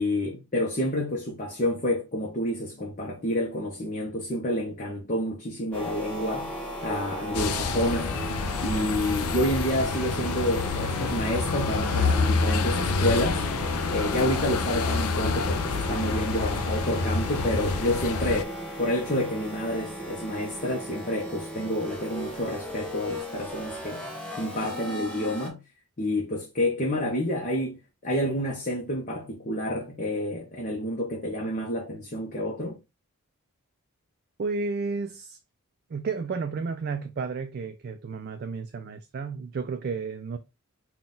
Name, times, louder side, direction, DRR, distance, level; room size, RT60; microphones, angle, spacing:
voice 1, 0.0-6.5 6.8-8.1 8.6-13.5 13.9-18.5 18.8-24.0 24.4-25.6 26.0-32.8, left 1 dB, 35° left, 0.8 m, -29 dB
sound 1, 5.7-25.5, equal, 5° left, 1.0 m, -36 dB
sound 2, 7.3-18.4, left 4 dB, 80° left, 0.5 m, -28 dB
voice 2, 34.4-35.4 35.9-40.4, right 4 dB, 45° right, 0.3 m, -32 dB
3.9 x 2.3 x 3.8 m
head